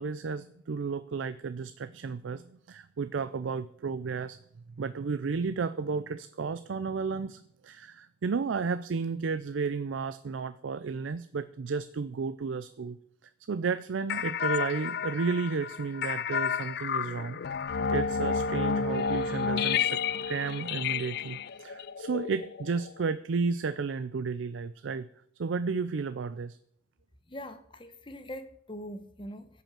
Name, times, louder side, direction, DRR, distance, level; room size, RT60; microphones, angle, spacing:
voice 1, 0.0-4.4 4.8-13.0 13.5-17.4 17.9-25.1 25.4-26.6, right 5 dB, 85° right, 0.5 m, -33 dB
sound 1, 14.1-23.0, left 6 dB, 55° left, 0.4 m, -31 dB
voice 2, 27.3-29.5, equal, 25° left, 0.9 m, -42 dB
13.0 x 5.6 x 7.4 m
head